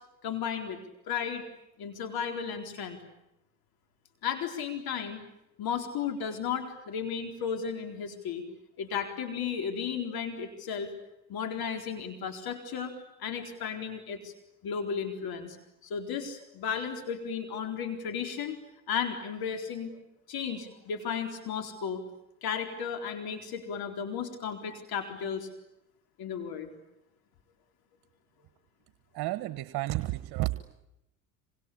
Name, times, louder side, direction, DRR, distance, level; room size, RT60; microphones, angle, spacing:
voice 1, 0.2-0.8 1.1-1.4 1.8-3.0 4.2-5.2 5.6-8.4 8.8-10.9 11.3-12.9 13.2-14.3 14.6-15.6 15.8-18.6 18.9-19.9 20.3-22.0 22.4-25.5 26.2-26.7, left 7 dB, 55° left, 5 dB, 4.1 m, -34 dB
voice 2, 29.1-30.6, right 18 dB, 60° right, 13 dB, 1.4 m, -31 dB
26.5 x 25.5 x 8.6 m, 0.88 s
hypercardioid pair, 75°, 43 cm